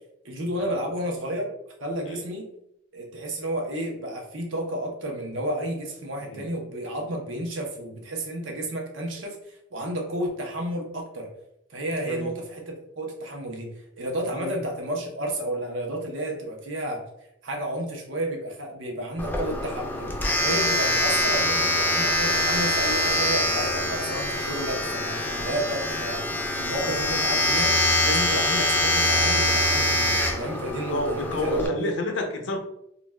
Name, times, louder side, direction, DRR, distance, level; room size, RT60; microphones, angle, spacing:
voice 1, 0.2-1.5 1.8-2.4 2.9-11.3 11.7-13.7 14.0-17.1 17.4-20.1 20.4-26.2 26.6-27.8 28.0-30.0 30.3-31.9, right 1 dB, 90° right, 1 dB, 0.7 m, -31 dB
Domestic sounds home sounds, 19.2-31.7, left 1 dB, 10° left, 0.3 m, -24 dB
voice 2, 29.9-30.2 30.7-32.6, left 2 dB, 80° left, 3 dB, 0.6 m, -32 dB
2.4 x 2.2 x 3.2 m, 0.79 s
head